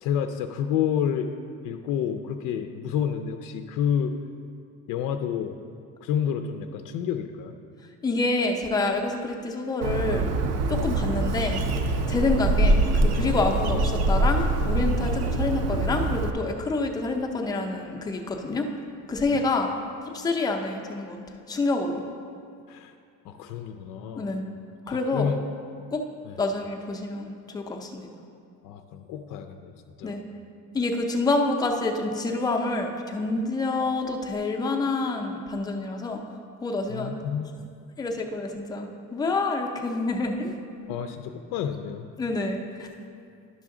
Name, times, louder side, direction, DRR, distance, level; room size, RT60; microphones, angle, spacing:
voice 1, 0.0-1.3 1.6-4.2 4.9-5.6 6.0-7.6 19.3-19.4 22.7-22.9 23.2-24.3 24.8-25.4 26.2-26.4 28.6-30.2 36.9-37.7 40.9-42.1, left 8 dB, 85° left, 6 dB, 0.5 m, -29 dB
voice 2, 8.0-10.3 10.7-11.6 12.1-18.7 19.1-19.7 20.1-22.0 24.2-24.4 24.9-25.3 25.9-26.0 26.4-28.1 30.0-30.2 30.7-36.2 36.6-37.1 38.0-40.5 42.2-42.9, left 3 dB, 10° left, 2 dB, 0.5 m, -27 dB
Bird, 9.8-16.3, right 2 dB, 55° right, 0.5 m, -24 dB
11.0 x 6.0 x 3.7 m, 2.4 s
cardioid pair, 175°, 31 cm